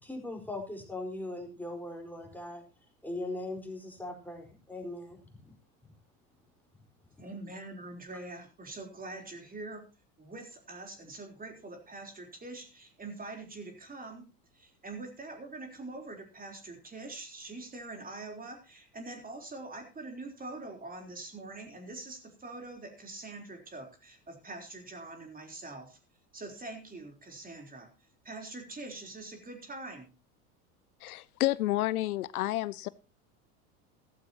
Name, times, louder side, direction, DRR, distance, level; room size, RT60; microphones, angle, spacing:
voice 1, 0.0-2.6 3.0-5.6, left 2 dB, 5° left, 2 dB, 4.5 m, -40 dB
voice 2, 7.2-9.9 10.2-14.3 14.5-26.0 26.3-27.9 28.2-30.1, right 2 dB, 20° right, 4 dB, 3.9 m, -44 dB
voice 3, 31.0-32.9, left 16 dB, 75° left, 20 dB, 0.6 m, -30 dB
14.5 x 13.5 x 3.0 m, 0.30 s
hypercardioid pair, 85°, 44 cm